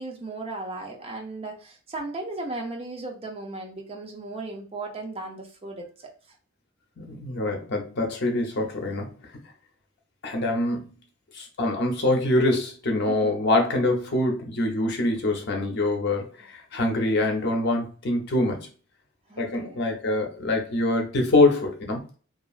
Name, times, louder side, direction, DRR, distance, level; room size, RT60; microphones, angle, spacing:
voice 1, 0.0-6.1 13.1-13.3 19.3-19.8, right 2 dB, 30° right, 1 dB, 0.5 m, -36 dB
voice 2, 7.0-9.1 10.2-10.9 11.3-18.7 19.4-22.0, left 2 dB, 55° left, 2 dB, 0.7 m, -24 dB
2.9 x 2.4 x 2.3 m, 0.38 s
head